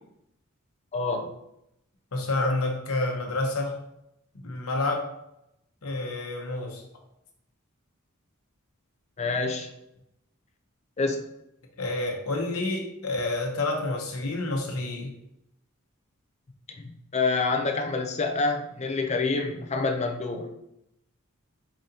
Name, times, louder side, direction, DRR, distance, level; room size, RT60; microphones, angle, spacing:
voice 1, 0.9-1.3 9.2-9.7 11.0-11.2 16.8-20.5, left 3 dB, 30° left, 5 dB, 0.5 m, -27 dB
voice 2, 2.1-3.8 4.3-5.1 5.8-6.8 11.8-15.1, left 2 dB, 75° left, 2 dB, 0.9 m, -29 dB
4.8 x 3.9 x 2.8 m, 0.81 s
head